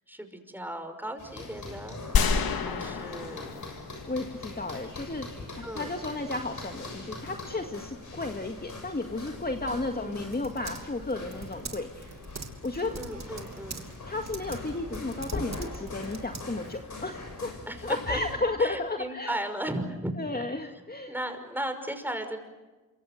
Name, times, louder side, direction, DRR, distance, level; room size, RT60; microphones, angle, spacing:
voice 1, 0.1-2.0 2.6-3.6 5.6-5.9 9.6-10.4 12.9-13.9 17.7-18.2 18.6-20.7 21.1-22.4, right 1 dB, 5° right, 7 dB, 5.8 m, -36 dB
sound 1, 1.2-18.3, left 3 dB, 55° left, 7.2 m, -42 dB
sound 2, 2.1-4.5, left 5 dB, 75° left, 2.2 m, -28 dB
voice 2, 4.1-5.3 5.6-12.1 12.6-13.0 14.0-17.5 17.8-19.4 20.2-21.1, left 2 dB, 25° left, 4 dB, 2.1 m, -33 dB
Typing, 9.4-16.9, right 4 dB, 50° right, 3.2 m, -44 dB
27.5 x 24.5 x 6.7 m, 1.2 s
cardioid pair, 50°, 36 cm